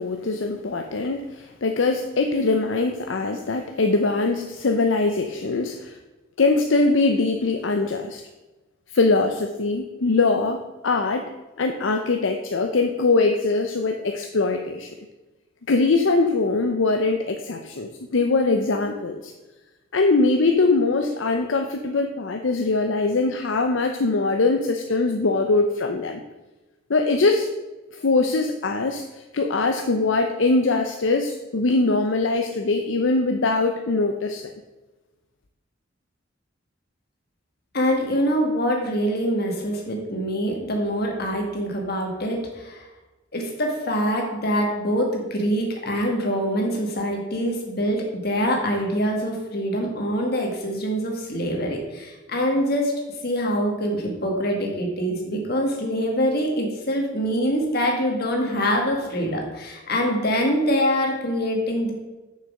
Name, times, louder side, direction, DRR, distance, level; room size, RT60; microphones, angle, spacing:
voice 1, 0.0-6.0 6.4-8.2 8.9-11.3 11.6-14.9 15.7-19.3 19.9-26.2 26.9-27.5 27.9-34.5, left 3 dB, 70° left, 5 dB, 0.7 m, -22 dB
voice 2, 37.7-42.8 43.3-61.9, equal, 55° left, 1 dB, 2.0 m, -24 dB
6.7 x 6.6 x 6.4 m, 1.1 s
head